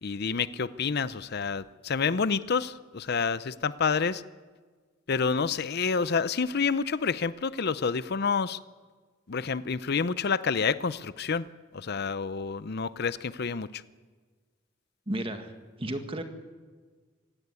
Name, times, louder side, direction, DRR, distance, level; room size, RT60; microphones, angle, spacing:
voice 1, 0.0-4.2 5.1-8.6 9.3-11.5 11.7-13.8, left 5 dB, 55° left, 16 dB, 0.6 m, -28 dB
voice 2, 15.1-15.5 15.8-16.2, right 1 dB, 30° right, 7 dB, 1.9 m, -32 dB
25.0 x 16.5 x 9.7 m, 1.5 s
head